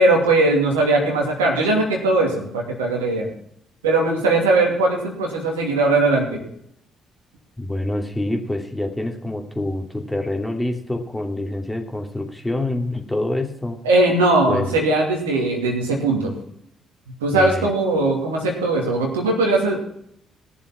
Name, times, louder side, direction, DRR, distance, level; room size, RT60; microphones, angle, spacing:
voice 1, 0.0-3.3 3.8-6.4 13.8-16.3 17.2-19.8, right 2 dB, 85° right, 0 dB, 2.7 m, -19 dB
voice 2, 7.6-13.8 14.5-14.8 17.3-17.7, left 1 dB, 10° left, 3 dB, 2.7 m, -26 dB
17.0 x 7.1 x 5.9 m, 0.70 s
hypercardioid pair, 45°, 0 cm